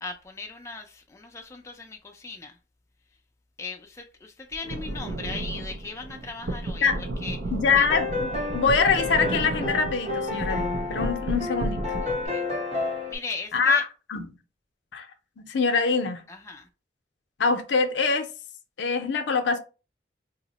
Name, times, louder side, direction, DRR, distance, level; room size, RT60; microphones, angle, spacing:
voice 1, 0.0-2.6 3.6-6.9 7.2-7.4 7.8-7.9 12.0-12.5 12.8-13.8 16.3-16.7, left 4 dB, 15° left, 0.3 m, -38 dB
sound 1, 4.6-12.3, right 2 dB, 80° right, 0.5 m, -33 dB
voice 2, 7.5-11.8 13.5-13.8 14.1-14.3 14.9-15.1 15.4-16.2 17.4-18.3 18.8-19.6, left 5 dB, 80° left, 0.5 m, -24 dB
sound 2, 7.7-13.2, left 3 dB, 35° right, 0.8 m, -31 dB
2.8 x 2.0 x 3.9 m
head